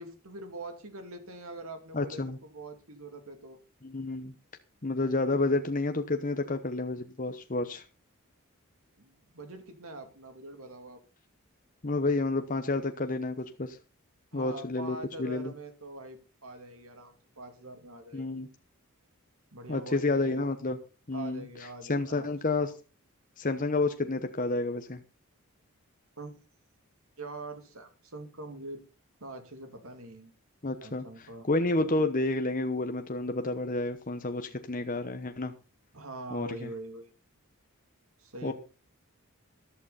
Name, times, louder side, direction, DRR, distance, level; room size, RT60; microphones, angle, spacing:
voice 1, 0.0-3.6 9.0-11.0 14.3-18.3 19.5-20.5 21.1-22.3 26.2-26.3 27.2-28.8 29.2-30.3 30.8-31.5 35.9-37.1 38.2-38.5, right 2 dB, 70° right, 6 dB, 2.7 m, -44 dB
voice 2, 1.9-2.4 3.8-4.3 4.8-7.8 11.8-13.8 14.3-15.5 18.1-18.5 19.7-20.8 21.1-21.4 21.9-22.7 23.4-25.0 30.6-35.5 36.3-36.7 38.4-38.5, left 2 dB, 35° left, 7 dB, 1.0 m, -30 dB
14.0 x 11.5 x 4.1 m, 0.32 s
head